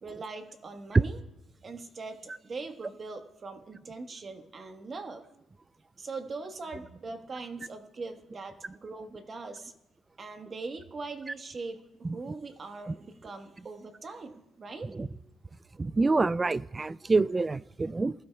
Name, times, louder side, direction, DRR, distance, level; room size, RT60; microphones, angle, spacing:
voice 1, 0.0-1.2 1.6-5.4 6.0-9.7 10.2-15.2, right 3 dB, 40° right, 1.3 m, -41 dB
voice 2, 15.8-18.1, right 3 dB, 25° right, 0.3 m, -26 dB
20.5 x 13.0 x 2.3 m
cardioid pair, 90°, 0 cm